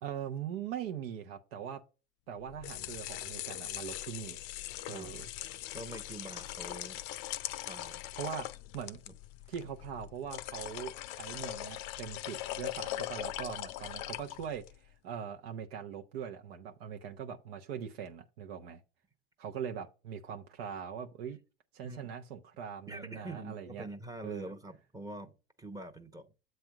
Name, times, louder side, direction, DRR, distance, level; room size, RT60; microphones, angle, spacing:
voice 1, 0.0-1.8 2.3-4.4 4.9-5.3 8.1-8.5 8.7-9.0 9.5-18.8 19.4-21.4 21.7-23.9 24.2-24.5, right 8 dB, 80° right, 0.9 m, -41 dB
sound 1, 2.4-14.8, left 15 dB, 60° left, 0.6 m, -41 dB
voice 2, 5.7-7.0 7.6-8.0 9.1-9.2 21.8-22.1 22.9-26.3, right 2 dB, 10° right, 0.8 m, -45 dB
7.8 x 3.4 x 5.8 m
supercardioid pair, 105°, 30 cm